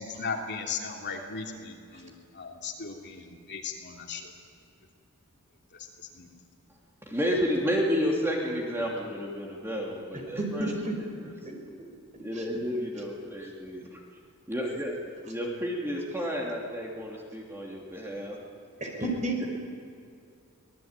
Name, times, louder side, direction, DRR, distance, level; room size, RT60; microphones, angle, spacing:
voice 1, 0.0-4.2 6.1-6.3, left 5 dB, 55° left, 1 dB, 2.9 m, -37 dB
voice 2, 7.1-10.7 12.2-13.9 14.5-14.9 15.3-18.4, equal, 10° right, -2 dB, 2.8 m, -31 dB
voice 3, 10.1-11.0 11.4-11.5 12.1-12.5 18.8-19.5, right 1 dB, 35° right, 2 dB, 5.0 m, -32 dB
25.0 x 19.0 x 9.0 m, 2.5 s
head